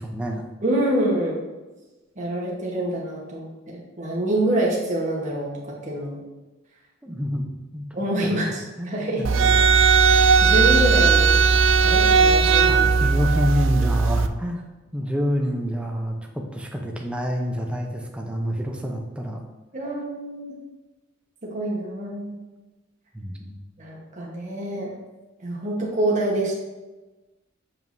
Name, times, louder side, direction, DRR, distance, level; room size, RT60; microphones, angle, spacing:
voice 1, 0.0-0.4 7.0-7.4 7.7-7.9 8.2-9.7 12.5-14.6 14.9-19.5 23.1-23.6, equal, 5° right, 1 dB, 0.6 m, -28 dB
voice 2, 0.6-1.4 2.2-6.2 7.9-9.3 10.1-11.4 11.8-13.0 19.7-20.5 21.4-22.3 23.8-24.9 25.4-26.5, right 1 dB, 40° right, -3 dB, 1.2 m, -26 dB
sound 1, 9.2-14.3, right 5 dB, 70° right, 0.4 m, -17 dB
7.4 x 5.1 x 2.7 m, 1.1 s
head